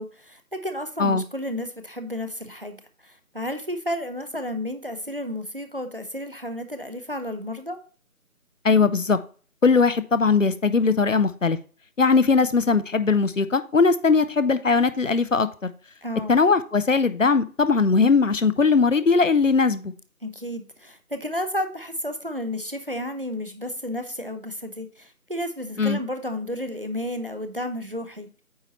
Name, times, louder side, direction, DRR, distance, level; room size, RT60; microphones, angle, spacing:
voice 1, 0.0-2.8 3.0-7.8 16.0-16.4 20.2-28.4, left 1 dB, 40° right, 9 dB, 0.7 m, -32 dB
voice 2, 8.6-9.2 9.6-11.6 12.0-15.7 16.3-19.9 25.8-26.0, left 4 dB, 60° left, 13 dB, 0.7 m, -20 dB
8.8 x 4.6 x 4.1 m, 0.39 s
figure-of-eight pair, 180°, 44 cm